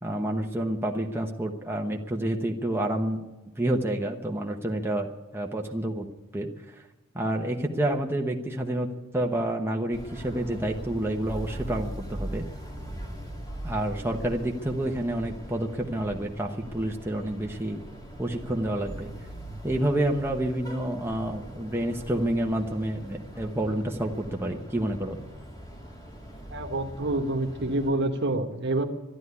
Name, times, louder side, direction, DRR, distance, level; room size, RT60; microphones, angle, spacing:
voice 1, 0.0-3.3 3.6-6.1 6.3-6.7 7.1-8.9 9.1-12.4 13.6-17.8 18.2-19.1 19.6-25.2, right 1 dB, 10° right, 1 dB, 1.0 m, -29 dB
sound 1, 9.9-27.9, right 1 dB, 20° left, 2.4 m, -41 dB
voice 2, 26.5-28.8, right 2 dB, 55° right, 6 dB, 1.4 m, -27 dB
12.5 x 11.0 x 9.6 m, 1.1 s
head